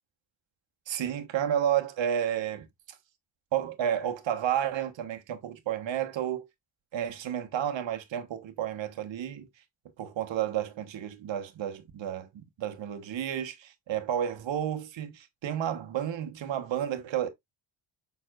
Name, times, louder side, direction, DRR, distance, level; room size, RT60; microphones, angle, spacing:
voice 1, 0.9-2.7 3.5-6.4 6.9-9.5 10.0-17.3, right 10 dB, 60° right, 1.2 m, -31 dB
6.5 x 3.5 x 2.4 m
cardioid pair, 75°, 50 cm